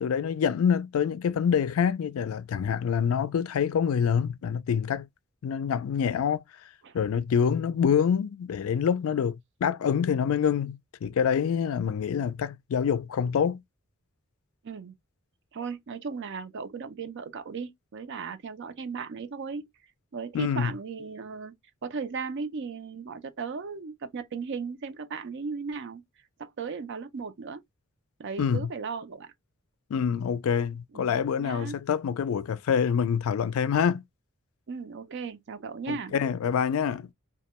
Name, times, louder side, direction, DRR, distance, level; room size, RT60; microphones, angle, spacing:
voice 1, 0.0-5.1 5.4-6.4 6.9-13.6 20.3-20.7 28.4-28.7 29.9-34.0 35.9-37.1, left 7 dB, 70° left, 0.3 m, -26 dB
voice 2, 14.6-14.9 15.5-19.7 20.1-21.5 21.8-26.0 26.4-27.6 28.2-29.3 30.9-31.8 34.7-36.1, right 5 dB, 55° right, 0.5 m, -36 dB
2.2 x 2.1 x 2.8 m
head